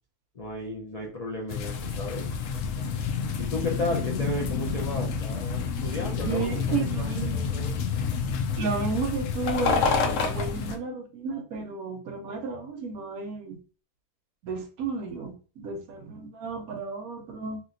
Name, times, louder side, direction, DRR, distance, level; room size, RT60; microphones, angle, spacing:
voice 1, 0.3-2.3 3.4-7.8, left 2 dB, 85° left, -1 dB, 0.3 m, -34 dB
sound 1, 1.5-10.8, left 5 dB, 70° left, 0.8 m, -28 dB
voice 2, 6.2-7.4 8.6-13.6 14.4-17.6, right 5 dB, 70° right, 4 dB, 1.2 m, -33 dB
2.9 x 2.9 x 2.6 m, 0.36 s
omnidirectional pair, 1.6 m